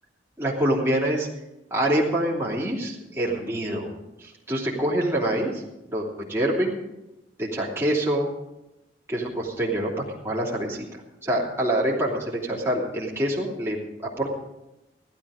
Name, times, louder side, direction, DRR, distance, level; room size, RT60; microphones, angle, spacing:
voice 1, 0.4-1.3 1.7-3.9 4.2-5.6 5.9-6.7 7.4-8.3 9.1-9.9 10.2-10.8 11.2-13.8 14.2-14.3, right 1 dB, 15° right, -4 dB, 3.0 m, -25 dB
15.5 x 12.5 x 5.0 m, 0.96 s
head